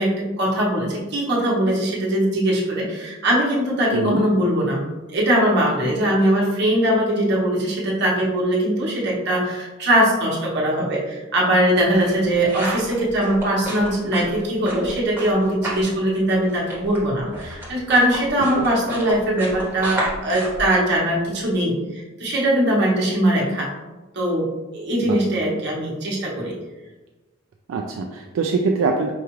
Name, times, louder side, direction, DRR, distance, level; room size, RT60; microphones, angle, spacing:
voice 1, 0.0-4.8 5.1-23.7 24.1-24.5 24.7-26.5, right 1 dB, 50° right, -4 dB, 1.0 m, -21 dB
sound 1, 11.6-15.9 16.2-21.5, right 1 dB, 10° right, 1.0 m, -32 dB
voice 2, 27.7-29.1, right 4 dB, 75° right, 2 dB, 0.3 m, -23 dB
4.8 x 2.4 x 3.0 m, 1.1 s
head